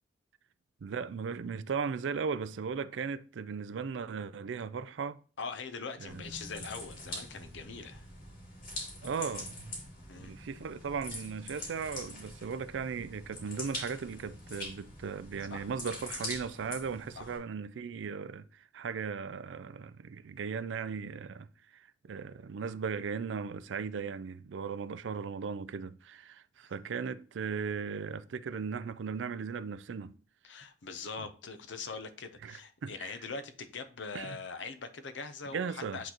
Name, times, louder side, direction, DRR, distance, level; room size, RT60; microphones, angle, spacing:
voice 1, 0.8-5.2 6.0-6.2 9.0-9.8 10.2-30.2 31.2-31.3 32.4-33.2 34.1-34.4 35.5-36.0, right 5 dB, 85° right, 0.4 m, -37 dB
voice 2, 5.4-8.0 10.1-10.3 15.5-15.7 17.1-17.3 30.4-36.1, left 4 dB, 80° left, 0.7 m, -42 dB
sound 1, 6.1-17.4, left 2 dB, 50° left, 2.4 m, -44 dB
8.4 x 3.9 x 2.9 m
head